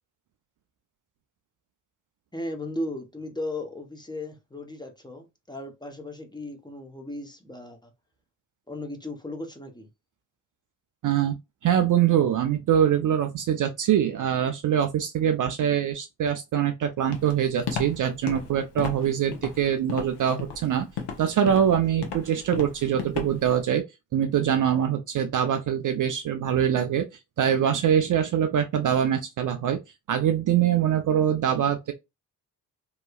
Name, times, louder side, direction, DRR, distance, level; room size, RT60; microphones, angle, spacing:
voice 1, 2.3-7.9 8.7-9.9, left 1 dB, 10° left, 0.8 m, -36 dB
voice 2, 11.0-11.4 11.6-20.9 21.2-23.8 24.1-27.1 27.4-29.8 30.1-31.9, right 9 dB, 40° right, 0.5 m, -23 dB
Walk footsteps, 17.1-23.6, left 6 dB, 55° left, 0.9 m, -34 dB
2.8 x 2.3 x 2.3 m
hypercardioid pair, 40°, 48 cm